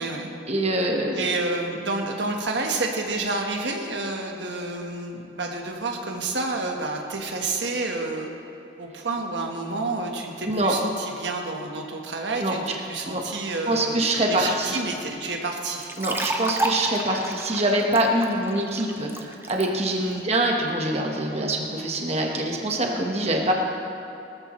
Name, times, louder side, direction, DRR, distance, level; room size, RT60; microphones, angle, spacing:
voice 1, 0.5-1.3 10.4-10.7 12.4-12.5 13.1-13.2 13.7-14.8 16.0-20.0 20.2-23.5, right 1 dB, 35° right, 0 dB, 1.2 m, -24 dB
voice 2, 1.1-8.3 8.8-14.0 14.3-15.9 19.9-20.2, right 3 dB, 85° right, 2 dB, 1.3 m, -29 dB
sound 1, 15.8-19.7, right 1 dB, 15° right, 0.7 m, -30 dB
18.5 x 13.5 x 3.1 m, 2.8 s
head